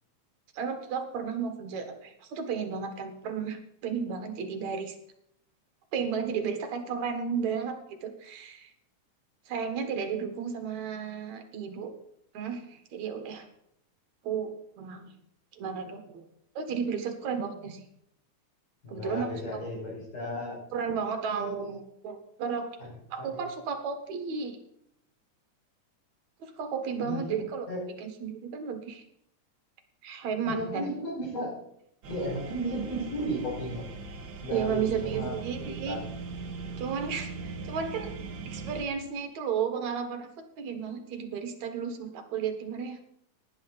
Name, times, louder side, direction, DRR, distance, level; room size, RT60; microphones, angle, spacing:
voice 1, 0.5-4.9 5.9-8.7 9.5-11.9 12.3-13.5 14.2-15.1 15.5-16.3 16.6-17.8 18.9-19.3 20.7-22.7 23.1-24.6 26.4-27.7 28.0-29.0 30.0-30.9 34.5-36.0 36.8-38.1 38.5-40.3 40.6-43.0, right 6 dB, 65° right, 6 dB, 2.7 m, -33 dB
voice 2, 18.8-20.6 22.8-22.9 23.2-23.4 27.0-27.8 30.4-31.5 32.1-33.9 34.4-36.0, equal, 90° left, -3 dB, 6.8 m, -34 dB
sound 1, 32.0-38.8, right 4 dB, 50° right, 1.7 m, -40 dB
17.5 x 10.5 x 4.0 m, 0.74 s
omnidirectional pair, 3.5 m